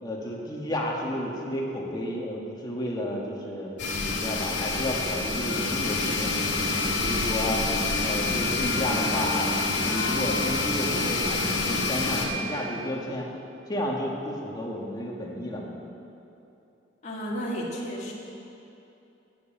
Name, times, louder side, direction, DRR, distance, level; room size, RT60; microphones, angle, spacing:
voice 1, 0.0-3.7 4.1-6.4 7.0-7.6 8.0-13.3 13.7-15.7, left 1 dB, 25° left, -2 dB, 1.6 m, -32 dB
sound 1, 3.8-12.3, left 3 dB, 80° left, 2.1 m, -27 dB
voice 2, 17.0-18.1, equal, 40° left, -5 dB, 2.0 m, -32 dB
9.9 x 7.3 x 8.6 m, 2.8 s
head